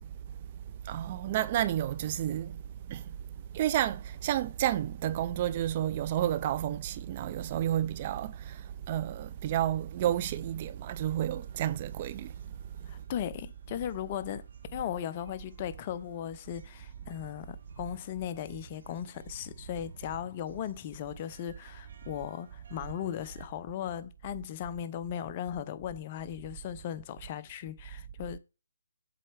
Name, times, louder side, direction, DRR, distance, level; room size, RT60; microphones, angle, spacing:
voice 1, 0.8-12.3, right 12 dB, 35° right, 0.3 m, -31 dB
sound 1, 9.9-23.5, right 4 dB, 55° right, 1.3 m, -55 dB
voice 2, 12.9-14.4 14.7-28.4, left 10 dB, 35° left, 0.5 m, -37 dB
7.7 x 4.1 x 3.3 m
figure-of-eight pair, 150°, 0 cm